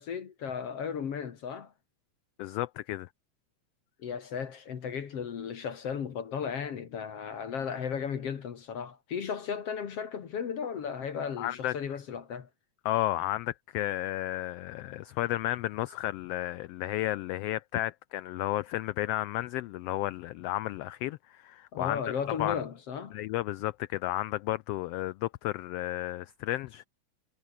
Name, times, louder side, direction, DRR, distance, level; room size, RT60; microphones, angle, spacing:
voice 1, 0.0-1.7 4.0-12.5 21.7-23.2, left 7 dB, 55° left, 2.7 m, -35 dB
voice 2, 2.4-3.1 11.4-12.0 12.8-22.0 22.3-22.6 23.1-26.8, left 15 dB, 85° left, 1.3 m, -33 dB
omnidirectional pair, 3.3 m